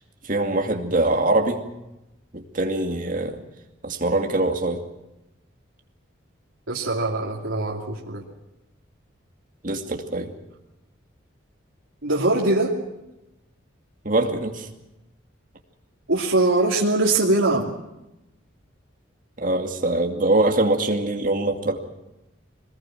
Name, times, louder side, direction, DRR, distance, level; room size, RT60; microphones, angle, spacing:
voice 1, 0.2-1.6 2.3-3.4 3.8-4.8 9.6-10.3 14.0-14.7 19.4-21.8, right 2 dB, 40° right, 3 dB, 2.4 m, -23 dB
voice 2, 6.7-8.2 12.0-12.8 16.1-17.7, right 2 dB, 80° right, -3 dB, 2.7 m, -22 dB
23.0 x 20.0 x 7.5 m, 0.93 s
head